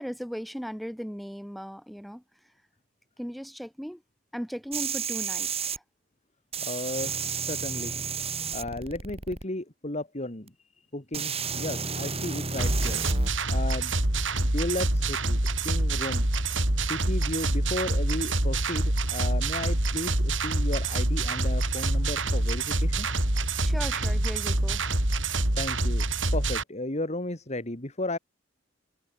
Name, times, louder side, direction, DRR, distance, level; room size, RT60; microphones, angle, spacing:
voice 1, 0.0-2.2 3.2-4.0 4.3-5.8 23.6-24.8, equal, ahead, 6.1 m, -37 dB
sound 1, 4.7-5.8 6.5-9.4 10.5-10.6 11.1-13.3 15.0-15.1, right 6 dB, 35° right, 5.3 m, -32 dB
voice 2, 6.6-8.0 8.5-10.5 10.9-13.0 13.5-14.0 14.4-16.2 16.8-23.1 25.6-26.1 26.3-28.2, left 1 dB, 35° left, 2.7 m, -34 dB
sound 2, 12.6-26.6, right 2 dB, 90° right, 4.5 m, -26 dB
head